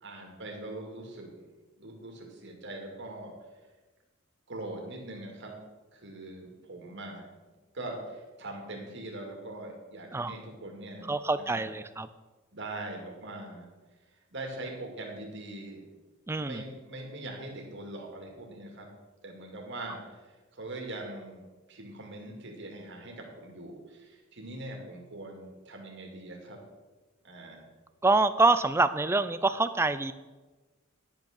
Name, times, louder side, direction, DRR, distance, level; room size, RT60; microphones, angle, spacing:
voice 1, 0.0-1.4 1.8-3.3 4.5-5.6 5.9-7.3 7.7-11.1 11.4-11.6 12.5-13.7 14.3-15.8 16.4-18.9 19.2-21.4 21.7-26.6 27.2-27.7, right 2 dB, 55° right, 1 dB, 2.3 m, -42 dB
voice 2, 11.1-12.1 16.3-16.6 28.0-30.1, right 3 dB, 10° right, 13 dB, 0.3 m, -26 dB
10.0 x 6.0 x 6.5 m, 1.2 s
head